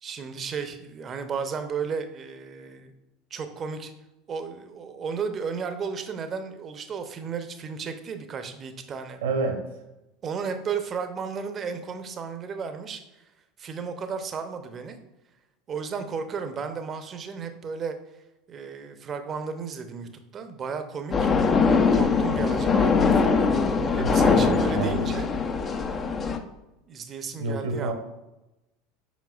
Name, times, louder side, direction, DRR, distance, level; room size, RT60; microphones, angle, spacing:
voice 1, 0.0-2.9 3.3-3.9 4.3-9.2 10.2-13.0 13.6-15.0 15.7-18.0 18.5-21.3 21.9-25.3 26.9-27.9, right 6 dB, 35° right, 8 dB, 0.7 m, -34 dB
voice 2, 9.2-9.6 24.0-25.2 27.4-27.9, right 3 dB, 75° right, 4 dB, 1.2 m, -29 dB
sound 1, 21.1-26.4, left 5 dB, 30° left, 0.6 m, -22 dB
7.3 x 5.3 x 2.4 m, 0.99 s
hypercardioid pair, 75°, 0 cm